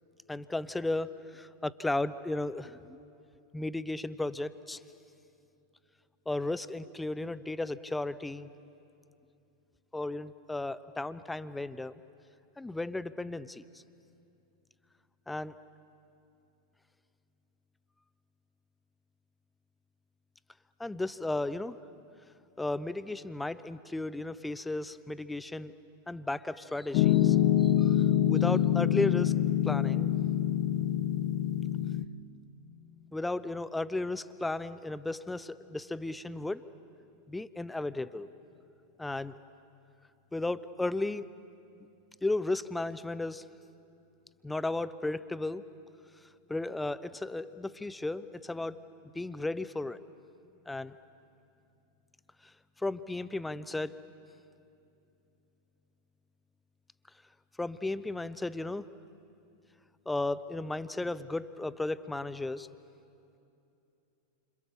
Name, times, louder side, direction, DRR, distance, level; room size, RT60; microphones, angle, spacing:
voice 1, 0.3-3.0 3.5-4.8 6.3-8.5 9.9-12.0 12.6-13.6 15.3-15.5 20.8-21.8 22.6-25.7 26.1-27.4 27.6-29.3 29.6-30.1 33.1-36.6 37.3-38.3 39.0-39.3 40.3-41.3 42.2-43.5 44.4-45.7 46.5-48.8 49.1-50.0 50.7-50.9 52.8-54.0 57.6-58.9 60.1-62.7, left 2 dB, 5° left, 14 dB, 0.7 m, -34 dB
Piano, 26.9-32.0, left 11 dB, 45° left, 0.9 m, -26 dB
29.0 x 27.0 x 6.8 m, 2.7 s
figure-of-eight pair, 90°, 0 cm